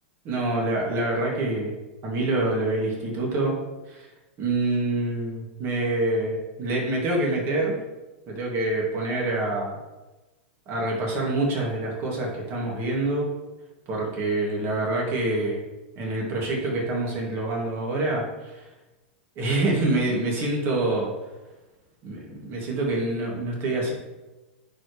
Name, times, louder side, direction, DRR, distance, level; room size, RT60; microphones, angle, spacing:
voice 1, 0.2-1.7 2.0-3.6 3.9-4.1 4.4-7.8 8.3-9.8 10.7-13.3 13.9-15.6 16.0-18.6 19.4-21.1 22.0-23.9, right 2 dB, 40° right, -2 dB, 2.5 m, -26 dB
9.9 x 5.2 x 3.3 m, 1.1 s
hypercardioid pair, 115°, 6 cm